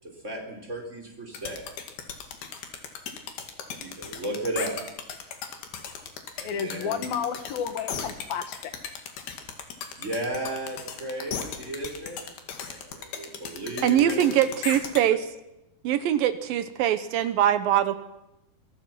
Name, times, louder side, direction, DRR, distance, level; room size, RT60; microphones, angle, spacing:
voice 1, 0.0-1.6 3.8-4.8 6.4-7.1 9.9-12.2 12.7-14.4, right 1 dB, 20° right, 2 dB, 4.3 m, -34 dB
sound 1, 1.3-15.0, left 7 dB, 90° left, 4.1 m, -37 dB
voice 2, 6.4-8.7, left 7 dB, 75° left, 9 dB, 3.4 m, -31 dB
voice 3, 13.8-15.3 15.8-18.0, right 11 dB, 75° right, 12 dB, 2.6 m, -23 dB
25.0 x 22.5 x 6.0 m, 0.91 s
omnidirectional pair, 4.3 m